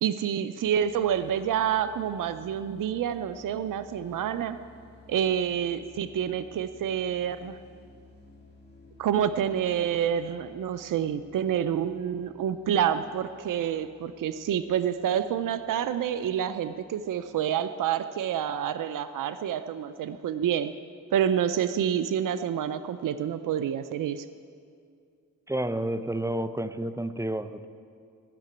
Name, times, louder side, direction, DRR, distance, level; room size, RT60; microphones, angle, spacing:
voice 1, 0.0-4.6 5.1-7.6 9.0-20.7 21.1-24.2, right 9 dB, 85° right, 11 dB, 0.5 m, -28 dB
sound 1, 0.6-17.3, left 3 dB, 30° left, 3.1 m, -55 dB
voice 2, 25.5-27.7, right 1 dB, 10° right, 11 dB, 0.6 m, -30 dB
15.5 x 6.7 x 9.6 m, 2.3 s
cardioid pair, 90°, 31 cm